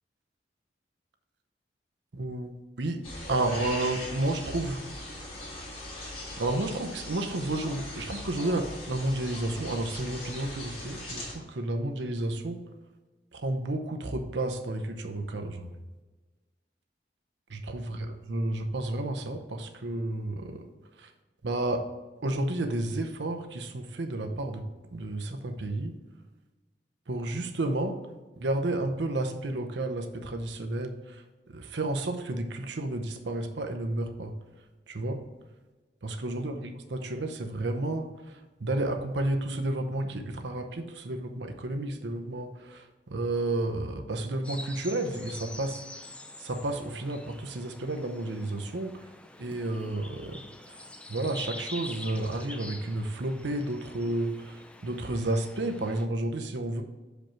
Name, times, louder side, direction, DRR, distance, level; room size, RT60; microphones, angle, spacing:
voice 1, 2.1-2.5 2.8-3.0 3.3-4.8 6.4-12.6 13.3-15.7 17.5-20.6 21.0-21.1 21.4-21.8 22.2-24.6 24.9-25.9 27.1-27.9 28.4-31.2 31.5-34.3 34.9-35.2 36.0-45.8 46.4-48.9 49.4-50.4 51.1-56.8, right 2 dB, 75° right, 5 dB, 0.7 m, -31 dB
sound 1, 3.0-11.3, left 1 dB, 30° left, 1.9 m, -40 dB
sound 2, 44.4-56.1, left 1 dB, 5° left, 0.3 m, -46 dB
6.0 x 5.2 x 4.4 m, 1.2 s
head